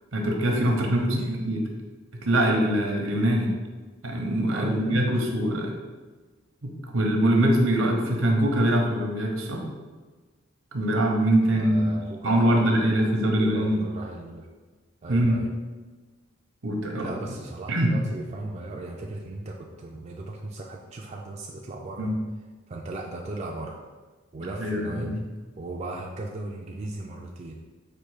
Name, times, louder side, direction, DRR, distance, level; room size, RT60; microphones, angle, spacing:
voice 1, 0.1-1.6 2.1-3.5 4.0-5.7 6.6-9.6 10.7-11.9 12.2-13.8 15.1-15.4 16.6-17.1 17.7-17.9 22.0-22.1 24.6-25.2, right 1 dB, 75° right, 1 dB, 0.8 m, -23 dB
voice 2, 0.8-1.3 4.5-5.2 11.5-14.5 15.0-15.5 17.0-22.1 22.7-23.8 24.3-25.2 25.6-27.5, right 2 dB, 35° right, -1 dB, 0.3 m, -37 dB
4.3 x 2.6 x 4.7 m, 1.3 s
head